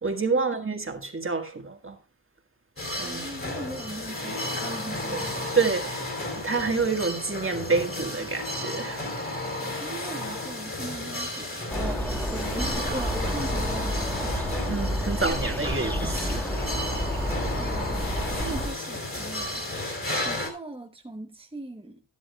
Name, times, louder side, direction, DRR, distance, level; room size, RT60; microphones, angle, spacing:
voice 1, 0.0-2.0 3.0-3.4 5.1-5.2 5.5-6.0 6.4-9.1 14.7-16.4, right 4 dB, 30° right, 1.6 m, -28 dB
sound 1, 2.8-20.5, left 1 dB, 30° left, 3.0 m, -33 dB
voice 2, 3.0-5.6 9.8-14.4 17.5-19.7 20.2-22.0, right 2 dB, 10° right, 1.0 m, -39 dB
zakrzowek natural ambiance birds, 11.7-18.7, equal, 5° left, 1.3 m, -30 dB
12.5 x 11.5 x 2.3 m
wide cardioid pair, 85°, 44 cm